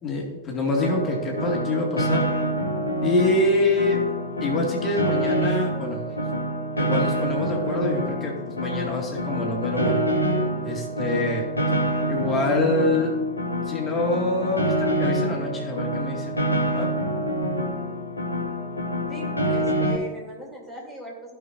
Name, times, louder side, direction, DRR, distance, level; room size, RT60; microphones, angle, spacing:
voice 1, 0.0-2.3 3.0-4.0 4.4-6.0 6.8-10.0 10.6-11.5 12.1-13.2 13.7-16.3 16.7-16.9, left 2 dB, 25° left, -1 dB, 2.1 m, -25 dB
Piano, 0.8-19.9, equal, 80° left, 1.1 m, -26 dB
sound 1, 9.8-12.6, right 3 dB, 80° right, 2.5 m, -38 dB
voice 2, 19.1-21.4, right 1 dB, 10° right, -3 dB, 3.2 m, -39 dB
15.5 x 6.0 x 2.6 m, 1.2 s
figure-of-eight pair, 90°, 0 cm